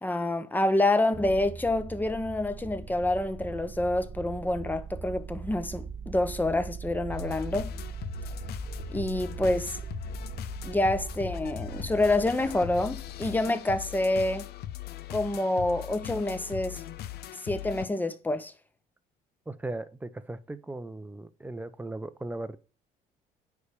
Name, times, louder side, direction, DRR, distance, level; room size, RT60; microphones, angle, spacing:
voice 1, 0.0-7.7 8.9-9.8 10.6-14.4 15.1-16.8 17.4-18.5, left 2 dB, 10° left, 0.9 m, -27 dB
sound 1, 1.1-14.0, right 5 dB, 25° right, 1.4 m, -40 dB
sound 2, 7.1-17.9, left 13 dB, 70° left, 0.6 m, -40 dB
voice 2, 19.5-22.6, right 2 dB, 10° right, 0.6 m, -37 dB
9.7 x 3.5 x 6.7 m
cardioid pair, 110°, 17 cm